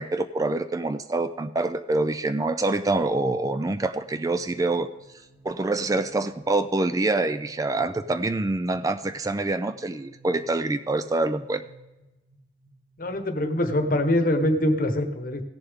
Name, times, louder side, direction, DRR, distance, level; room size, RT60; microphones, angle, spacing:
voice 1, 0.0-4.9 5.4-11.6, right 2 dB, 20° right, 10 dB, 0.3 m, -26 dB
sound 1, 3.9-13.2, right 2 dB, 70° right, 3.0 m, -56 dB
voice 2, 13.0-15.4, left 1 dB, 50° left, 7 dB, 1.0 m, -24 dB
16.5 x 7.0 x 3.6 m, 1.0 s
head